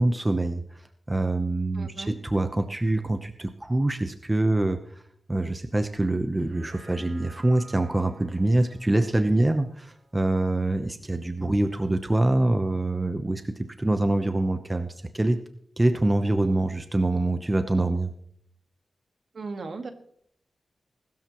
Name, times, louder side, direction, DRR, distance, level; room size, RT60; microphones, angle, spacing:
voice 1, 0.0-5.0 5.3-15.4 15.8-18.1, right 2 dB, 20° right, 7 dB, 0.9 m, -25 dB
voice 2, 1.8-2.2 19.3-19.9, right 4 dB, 60° right, 6 dB, 1.7 m, -36 dB
sound 1, 6.3-10.8 11.3-11.4, right 3 dB, 80° right, 6.5 m, -53 dB
20.5 x 13.0 x 3.1 m, 0.66 s
wide cardioid pair, 105°, 0 cm